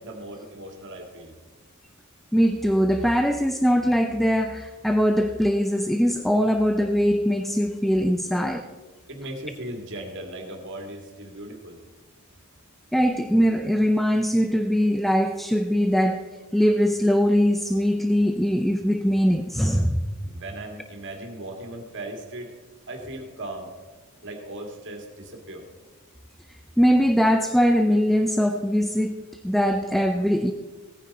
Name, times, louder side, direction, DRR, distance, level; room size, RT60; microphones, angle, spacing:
voice 1, 0.0-1.3 9.1-11.8 20.2-22.5 22.9-23.7 24.2-25.7, right 1 dB, 55° right, 3 dB, 2.1 m, -38 dB
voice 2, 2.3-8.7 12.9-16.2 16.5-20.1 26.8-30.5, equal, ahead, 6 dB, 0.4 m, -21 dB
16.5 x 9.7 x 4.1 m, 1.3 s
head